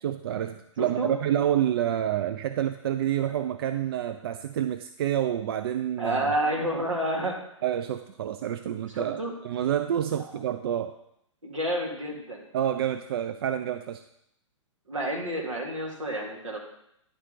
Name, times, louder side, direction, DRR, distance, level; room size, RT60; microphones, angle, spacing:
voice 1, 0.0-6.2 7.6-9.2 9.4-11.0 12.5-14.0, right 10 dB, 50° right, 9 dB, 0.4 m, -28 dB
voice 2, 0.8-1.1 6.0-7.4 8.9-9.3 11.4-12.4 14.9-16.6, right 1 dB, 80° right, -1 dB, 2.0 m, -29 dB
10.0 x 4.3 x 5.0 m, 0.77 s
figure-of-eight pair, 110°, 17 cm